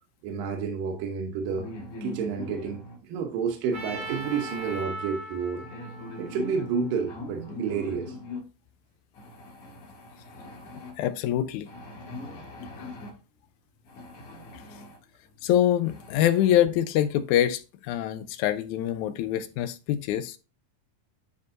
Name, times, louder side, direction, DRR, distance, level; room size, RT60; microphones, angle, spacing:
voice 1, 0.2-1.7 2.0-5.6 6.2-8.2, right 6 dB, 75° right, 2.7 m, -30 dB
sound 1, 1.4-3.0 3.7-4.9 5.6-8.4 9.1-10.9 11.7-13.1 13.8-15.0 15.4-15.5 15.8-16.7, left 1 dB, 60° left, 3.1 m, -41 dB
Trumpet, 3.7-7.8, right 2 dB, 30° right, 1.7 m, -40 dB
voice 2, 11.0-11.7 15.4-20.4, left 11 dB, 75° left, 1.8 m, -25 dB
12.5 x 4.7 x 2.6 m
omnidirectional pair, 4.0 m